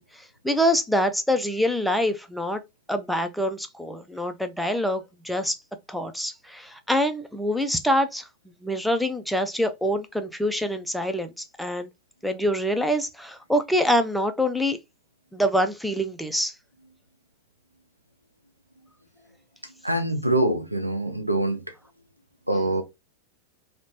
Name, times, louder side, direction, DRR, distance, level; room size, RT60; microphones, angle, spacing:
voice 1, 0.0-2.6 2.9-5.6 5.9-8.3 8.6-11.9 12.2-14.8 15.3-16.5, equal, ahead, 0.3 m, -25 dB
voice 2, 19.8-21.6 22.5-22.8, right 1 dB, 85° right, 0.4 m, -24 dB
2.9 x 2.1 x 2.6 m
figure-of-eight pair, 90°, 0 cm